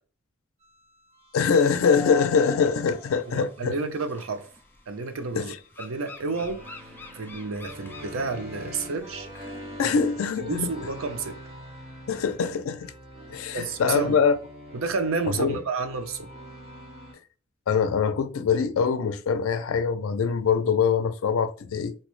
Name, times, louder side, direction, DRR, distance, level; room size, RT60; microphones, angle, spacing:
sound 1, 0.6-17.1, equal, 30° right, 1.1 m, -45 dB
voice 1, 1.3-3.8 5.3-5.6 9.8-10.7 12.1-12.9 13.3-14.3 15.3-15.6 17.7-22.0, left 6 dB, 85° left, 0.4 m, -23 dB
sound 2, 1.8-9.6, left 3 dB, 10° left, 0.3 m, -44 dB
voice 2, 3.3-4.5 4.9-6.7 7.1-9.3 9.8-10.0 10.4-11.4 13.5-14.2 14.7-16.3, right 4 dB, 80° right, 0.5 m, -30 dB
4.0 x 2.0 x 3.0 m
head